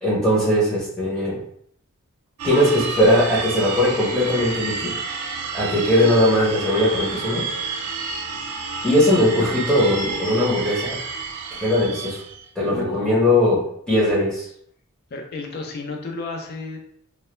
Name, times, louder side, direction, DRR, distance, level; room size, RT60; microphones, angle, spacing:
voice 1, 0.0-1.4 2.4-4.9 5.5-7.5 8.8-11.0 11.6-12.2 12.6-14.5, left 1 dB, 5° left, -8 dB, 0.6 m, -19 dB
sound 1, 2.4-12.5, right 4 dB, 85° right, 0.4 m, -30 dB
voice 2, 12.7-13.3 15.1-16.8, left 3 dB, 45° left, 2 dB, 0.4 m, -32 dB
2.1 x 2.0 x 3.0 m, 0.65 s
head